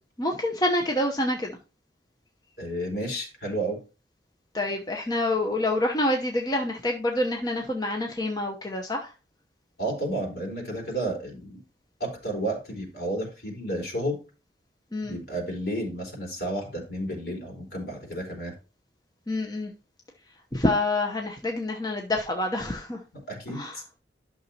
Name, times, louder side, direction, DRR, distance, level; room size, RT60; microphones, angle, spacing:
voice 1, 0.2-1.6 4.5-9.1 14.9-15.2 19.3-19.7 20.5-23.0 23.5-23.8, left 1 dB, 20° left, 0.9 m, -27 dB
voice 2, 2.6-3.8 9.8-11.6 12.0-14.2 15.0-18.5 23.3-23.8, right 1 dB, 60° left, 3.9 m, -31 dB
11.5 x 6.2 x 2.9 m
head